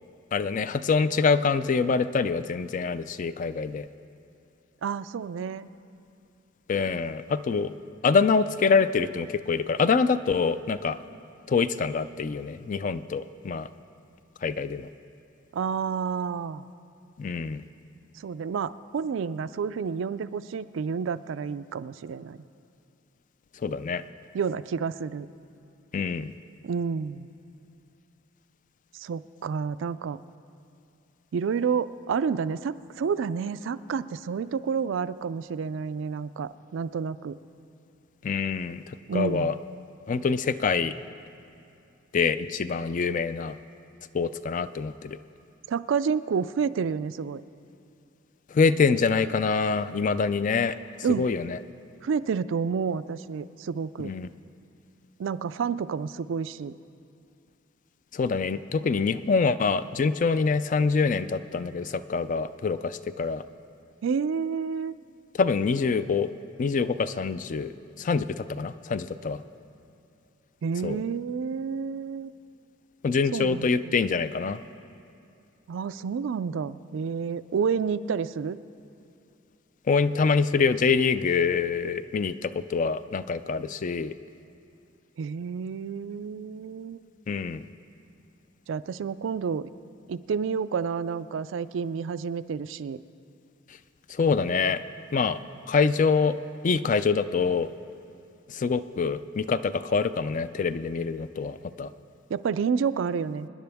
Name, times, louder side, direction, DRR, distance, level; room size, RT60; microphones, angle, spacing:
voice 1, 0.3-3.9 6.7-7.7 8.0-11.0 11.5-13.7 14.4-14.9 17.2-17.6 23.6-24.0 25.9-26.3 38.2-39.5 40.1-40.9 42.1-43.6 44.1-45.2 48.5-50.8 51.2-51.6 54.0-54.3 58.1-63.4 65.3-66.3 66.6-69.4 70.8-71.0 73.0-74.6 79.9-84.1 87.3-87.6 94.1-94.8 95.1-95.4 95.7-96.4 96.6-97.7 98.5-101.9, left 5 dB, 40° left, 13 dB, 0.4 m, -25 dB
voice 2, 4.8-5.7 15.5-16.7 18.2-22.4 24.3-25.3 26.6-27.3 28.9-30.2 31.3-37.4 39.1-39.5 45.7-47.4 51.0-51.3 52.0-54.1 55.2-56.7 64.0-64.9 70.6-72.3 73.3-73.9 75.7-78.6 85.2-87.0 88.7-89.7 90.1-93.0 102.3-103.5, right 6 dB, 70° right, 15 dB, 0.3 m, -29 dB
26.0 x 10.5 x 3.5 m, 2.6 s
head